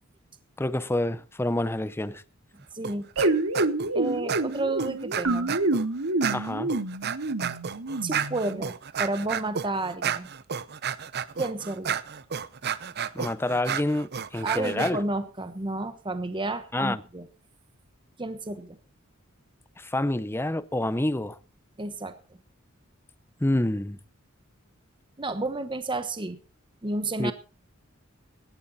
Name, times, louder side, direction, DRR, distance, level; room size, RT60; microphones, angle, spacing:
voice 1, 0.6-2.2 6.3-6.7 13.1-15.0 16.7-17.0 19.8-21.4 23.4-24.0 27.2-27.3, left 1 dB, 10° left, 0.6 m, -27 dB
voice 2, 2.7-3.1 3.9-5.6 8.0-10.3 11.4-12.0 14.4-17.3 18.2-18.8 21.8-22.1 25.2-26.4 26.8-27.3, right 2 dB, 25° right, 1.1 m, -31 dB
sound 1, 2.8-3.3 3.5-3.9 4.3-5.8 6.2-14.9, right 8 dB, 50° right, 0.7 m, -32 dB
sound 2, 3.2-8.6, right 2 dB, 85° right, 2.1 m, -27 dB
17.5 x 11.5 x 4.1 m
head